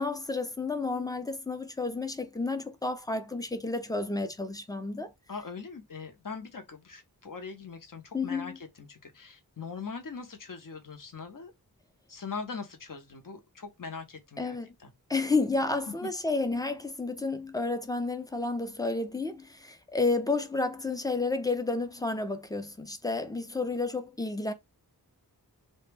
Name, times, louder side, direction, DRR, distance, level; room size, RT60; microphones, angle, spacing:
voice 1, 0.0-5.1 8.1-8.6 14.4-14.7 15.1-24.5, left 3 dB, 10° left, 0.4 m, -31 dB
voice 2, 5.3-11.5 12.1-14.9 16.0-16.1, left 5 dB, 55° left, 0.7 m, -41 dB
2.1 x 2.1 x 3.2 m
wide cardioid pair, 45°, 39 cm